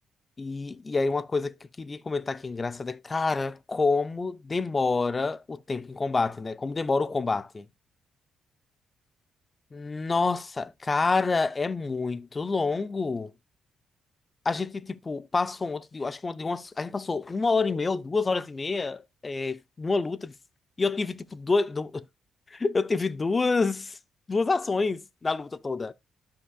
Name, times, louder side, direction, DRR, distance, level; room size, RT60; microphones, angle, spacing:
voice 1, 0.4-7.6 9.7-13.3 14.5-20.3 20.8-22.0 22.5-24.0 24.3-25.9, left 3 dB, 25° left, 0.5 m, -28 dB
12.5 x 5.6 x 2.4 m
cardioid pair, 95°, 0 cm